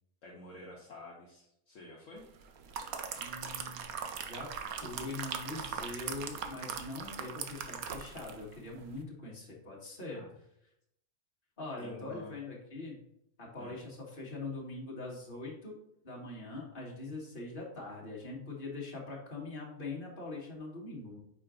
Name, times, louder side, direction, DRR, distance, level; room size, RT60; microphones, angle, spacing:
voice 1, 0.2-2.2 10.1-10.3 11.8-12.4 13.6-13.8, left 2 dB, 60° left, -4 dB, 1.3 m, -50 dB
sound 1, 2.4-8.4 8.8-8.9, right 7 dB, 75° right, 1.1 m, -40 dB
voice 2, 3.2-3.8 4.3-4.5 4.8-10.2 11.6-13.0 13.4-15.8 16.0-21.2, left 3 dB, 35° left, -3 dB, 1.8 m, -42 dB
5.9 x 4.3 x 3.7 m, 0.78 s
omnidirectional pair, 1.5 m